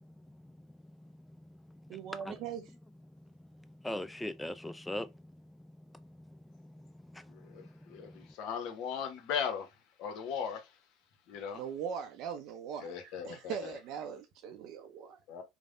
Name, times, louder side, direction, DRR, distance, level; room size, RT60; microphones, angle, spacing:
voice 1, 0.0-2.4 3.1-3.3 3.5-8.3, left 1 dB, 10° left, 0.3 m, -44 dB
voice 2, 1.9-2.6 11.5-15.2, right 7 dB, 55° right, 0.4 m, -40 dB
voice 3, 7.4-9.7 10.0-10.7 11.3-11.6 12.8-13.8 15.3-15.4, left 7 dB, 60° left, 0.7 m, -38 dB
3.2 x 2.0 x 2.4 m
hypercardioid pair, 75°, 0 cm